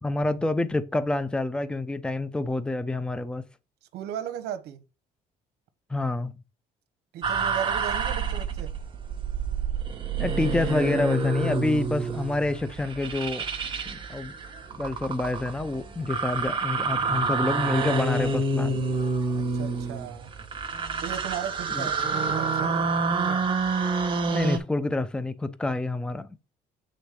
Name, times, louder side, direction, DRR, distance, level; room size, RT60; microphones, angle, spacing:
voice 1, 0.0-3.4 5.9-6.4 10.2-13.4 13.9-14.3 14.7-18.8 21.7-21.9 24.3-26.3, left 2 dB, 5° left, 0.6 m, -28 dB
voice 2, 3.9-4.8 7.1-8.7 19.4-20.3 21.0-23.4, right 9 dB, 75° right, 0.9 m, -36 dB
sound 1, 7.2-24.6, right 3 dB, 30° right, 1.3 m, -28 dB
8.2 x 3.9 x 4.9 m
cardioid pair, 110°, 17 cm